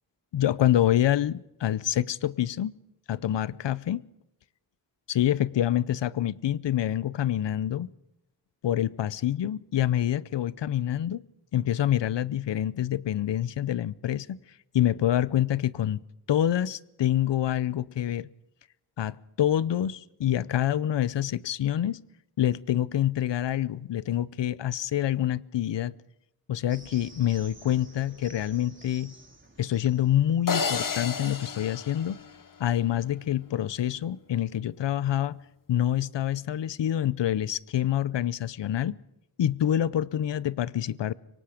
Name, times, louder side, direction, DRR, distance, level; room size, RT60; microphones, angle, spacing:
voice 1, 0.3-2.7 3.1-4.0 5.1-7.9 8.6-11.2 11.5-14.4 14.7-16.0 16.3-18.3 19.0-22.0 22.4-25.9 26.5-29.1 29.6-32.2 32.6-35.4 35.7-39.0 39.4-41.1, left 11 dB, 80° left, 0.7 m, -26 dB
sound 1, 26.7-31.5, right 2 dB, 25° right, 3.7 m, -52 dB
sound 2, 30.5-32.8, left 5 dB, 50° left, 1.2 m, -31 dB
25.5 x 24.0 x 5.0 m
wide cardioid pair, 130°, 42 cm